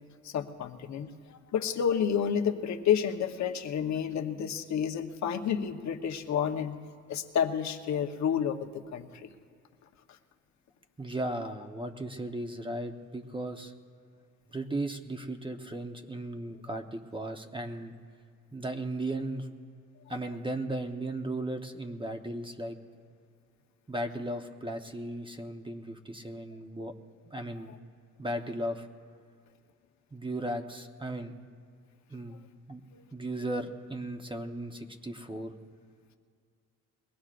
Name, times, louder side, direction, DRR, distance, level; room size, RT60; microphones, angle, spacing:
voice 1, 0.2-6.8 7.1-9.3 10.1-10.2 27.6-27.7 32.3-32.4 32.9-33.0, left 8 dB, 65° left, 6 dB, 1.1 m, -30 dB
voice 2, 11.0-13.7 14.5-17.9 18.5-19.5 20.1-22.8 23.9-26.9 27.3-27.7 28.2-28.9 30.1-31.3 32.1-32.4 32.7-32.8 33.1-35.5, right 1 dB, 15° right, 5 dB, 1.0 m, -36 dB
22.5 x 17.5 x 2.5 m, 2.2 s
cardioid pair, 90°, 30 cm